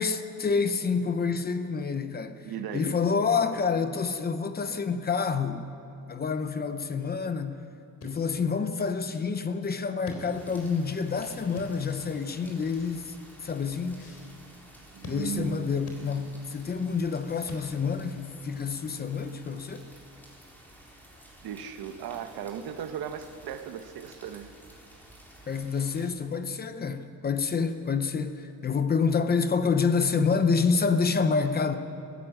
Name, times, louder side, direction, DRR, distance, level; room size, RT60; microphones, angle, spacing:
voice 1, 0.0-2.5 2.7-5.7 6.1-7.6 8.0-13.1 13.4-14.0 15.0-19.9 25.5-31.8, left 5 dB, 25° left, 0.8 m, -28 dB
voice 2, 2.4-3.0 14.9-16.1 21.4-24.5, right 8 dB, 80° right, 1.5 m, -37 dB
sound 1, 7.9-18.0, left 2 dB, 40° left, 3.8 m, -48 dB
sound 2, 10.3-26.1, equal, 5° left, 3.8 m, -52 dB
21.0 x 15.0 x 8.9 m
cardioid pair, 180°, 36 cm